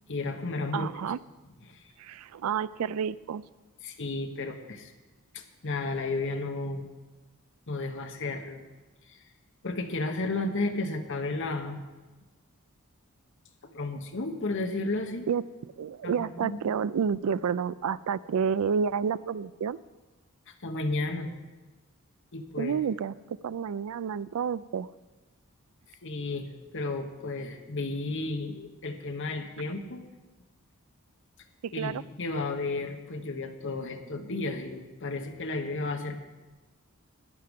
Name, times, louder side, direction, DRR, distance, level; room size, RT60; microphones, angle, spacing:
voice 1, 0.1-0.9 1.7-1.8 3.8-4.9 5.3-6.9 7.7-8.6 9.1-9.2 9.6-11.8 13.7-15.3 16.0-16.6 20.6-21.3 22.3-22.8 26.0-30.0 31.7-36.2, left 2 dB, 60° left, 5 dB, 1.1 m, -33 dB
voice 2, 0.7-1.2 2.0-3.4 15.3-15.4 15.8-19.8 22.6-24.9 31.6-32.0, right 7 dB, 75° right, 18 dB, 0.3 m, -30 dB
11.0 x 9.5 x 5.2 m, 1.2 s
head